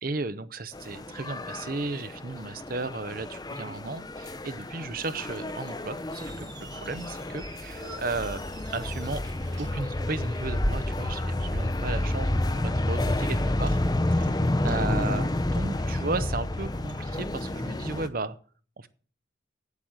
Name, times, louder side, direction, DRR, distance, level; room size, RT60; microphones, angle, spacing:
voice 1, 0.0-8.4 8.7-9.2 9.6-13.8 14.2-18.4 18.8-18.9, right 3 dB, 45° right, 14 dB, 0.8 m, -34 dB
sound 1, 0.7-18.1, left 1 dB, 20° left, 0.6 m, -30 dB
Bicycle, 1.1-17.4, equal, 75° right, 3.1 m, -42 dB
Squeak, 6.0-10.7, right 2 dB, 20° right, 1.3 m, -49 dB
9.0 x 8.4 x 7.8 m, 0.43 s
head